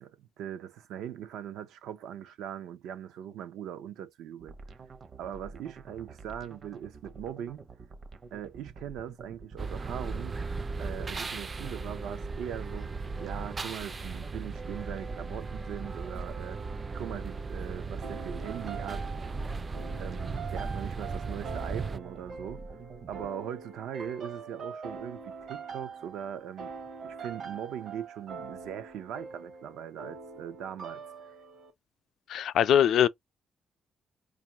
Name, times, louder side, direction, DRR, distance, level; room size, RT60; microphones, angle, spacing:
voice 1, 0.0-4.5 5.2-7.7 8.3-10.4 10.8-12.9 13.2-16.6 16.9-19.1 20.0-22.6 23.1-26.7 27.0-31.4, right 9 dB, 85° right, 0.6 m, -40 dB
sound 1, 4.4-23.3, right 4 dB, 50° right, 0.8 m, -49 dB
sound 2, 9.6-22.0, right 4 dB, 35° right, 0.4 m, -37 dB
sound 3, 18.0-31.7, right 5 dB, 65° right, 1.2 m, -43 dB
voice 2, 32.3-33.1, left 10 dB, 75° left, 0.3 m, -22 dB
4.6 x 2.5 x 2.8 m
cardioid pair, 85°, 0 cm